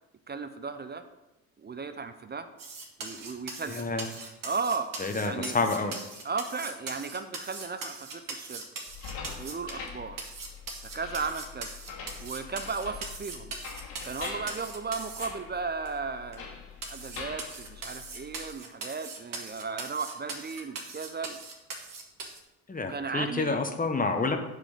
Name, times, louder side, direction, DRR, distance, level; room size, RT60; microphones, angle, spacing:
voice 1, 0.3-1.0 1.6-2.5 3.0-3.9 4.4-4.9 5.2-5.6 6.2-8.6 9.3-10.2 10.8-11.7 12.2-13.5 14.0-16.5 16.9-21.4 22.9-23.6, right 4 dB, 20° right, 10 dB, 0.7 m, -35 dB
sound 1, 2.6-9.9 10.2-15.3 15.9-16.0 16.3-16.4 16.8-22.4, right 3 dB, 40° right, 1.9 m, -40 dB
voice 2, 3.7-4.1 5.0-5.9 22.7-24.4, left 3 dB, 15° left, 5 dB, 1.3 m, -28 dB
sound 2, 8.9-18.5, left 5 dB, 60° left, 2.4 m, -44 dB
8.8 x 5.0 x 6.6 m, 0.97 s
figure-of-eight pair, 50°, 48 cm